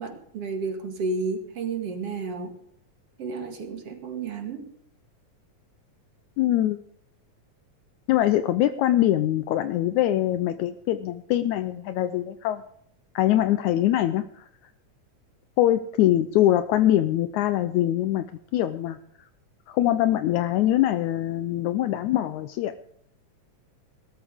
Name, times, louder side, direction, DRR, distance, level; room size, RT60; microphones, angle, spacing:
voice 1, 0.0-2.6 3.2-4.7, right 4 dB, 50° right, 4 dB, 2.9 m, -31 dB
voice 2, 6.4-6.8 8.1-12.6 13.2-14.5 15.6-18.3 18.5-19.0 19.7-22.7, left 13 dB, 80° left, 10 dB, 2.0 m, -23 dB
20.0 x 13.0 x 3.6 m, 0.70 s
omnidirectional pair, 3.5 m